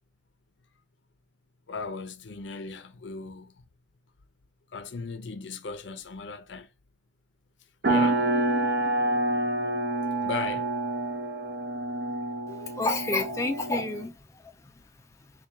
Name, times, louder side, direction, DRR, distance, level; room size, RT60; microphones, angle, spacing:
voice 1, 1.7-3.6 4.7-6.7 7.8-8.3 10.2-10.7, left 4 dB, 75° left, 0.5 m, -37 dB
sound 1, 7.8-14.0, right 2 dB, 60° right, 0.7 m, -28 dB
voice 2, 12.5-15.3, left 2 dB, 15° left, 0.4 m, -31 dB
4.3 x 2.3 x 3.5 m
head